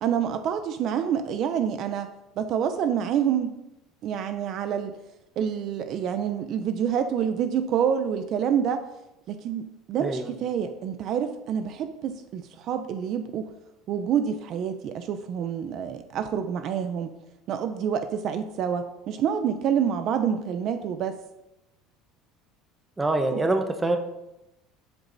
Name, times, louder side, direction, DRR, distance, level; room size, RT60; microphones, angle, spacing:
voice 1, 0.0-2.1 2.4-3.5 4.0-5.0 5.4-8.8 9.3-13.5 13.9-17.1 17.5-21.2 23.3-23.4, right 8 dB, 40° right, 9 dB, 0.7 m, -27 dB
voice 2, 23.0-24.0, right 2 dB, 10° right, 6 dB, 0.9 m, -25 dB
11.5 x 8.0 x 4.1 m, 0.90 s
cardioid pair, 165°, 0 cm